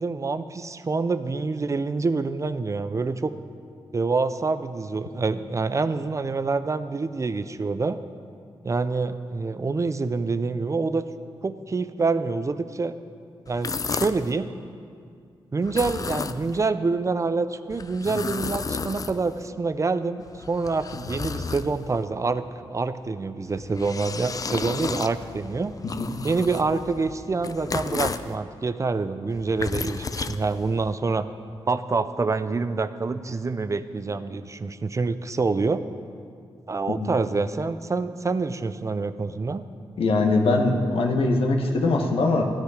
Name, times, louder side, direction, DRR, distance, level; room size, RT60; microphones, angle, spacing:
voice 1, 0.0-3.3 3.9-8.0 8.6-11.1 11.4-12.9 13.5-14.5 15.5-25.7 26.2-31.3 31.7-35.8 36.7-39.6, right 4 dB, 35° right, 12 dB, 0.5 m, -26 dB
sound 1, 13.5-14.3 15.6-16.7 17.7-19.5 20.2-22.1 23.5-28.4 29.3-31.0, left 4 dB, 40° left, 0.4 m, -33 dB
voice 2, 40.0-42.4, left 3 dB, 80° left, 2 dB, 1.2 m, -22 dB
13.5 x 9.5 x 4.9 m, 2.3 s
cardioid pair, 75°, 9 cm